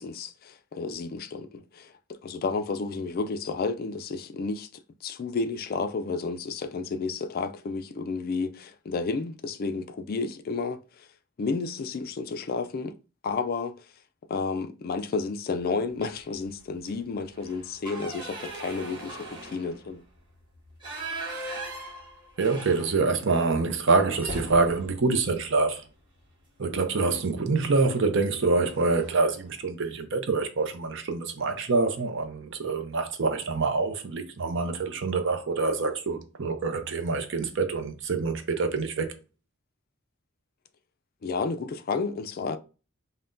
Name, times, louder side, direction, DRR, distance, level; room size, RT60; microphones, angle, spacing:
voice 1, 0.0-11.1 11.4-13.0 13.2-13.8 14.3-20.0 41.2-42.6, left 4 dB, 45° left, 0.3 m, -31 dB
sound 1, 16.0-16.4 16.8-16.9 17.3-23.3 23.6-23.7 24.1-26.3 27.6-27.9 28.3-28.4 28.7-29.3, right 2 dB, 20° right, 1.3 m, -40 dB
voice 2, 22.4-25.8 26.6-39.1, right 3 dB, 60° right, 0.6 m, -26 dB
5.5 x 2.2 x 2.5 m
head